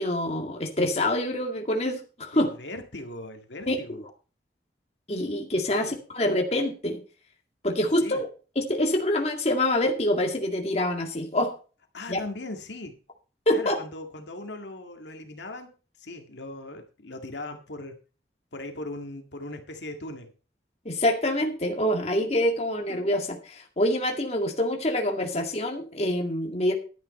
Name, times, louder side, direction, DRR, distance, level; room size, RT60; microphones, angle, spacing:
voice 1, 0.0-2.5 3.7-3.8 5.1-7.0 7.6-8.3 8.6-11.5 12.1-12.2 13.5-13.8 20.9-26.7, left 1 dB, 35° left, 2 dB, 2.1 m, -26 dB
voice 2, 2.3-4.0 5.7-6.0 8.0-8.2 11.9-13.0 13.5-15.7 16.0-18.0 18.5-20.3, left 2 dB, 80° left, 4 dB, 2.0 m, -39 dB
12.0 x 9.7 x 4.3 m, 0.35 s
head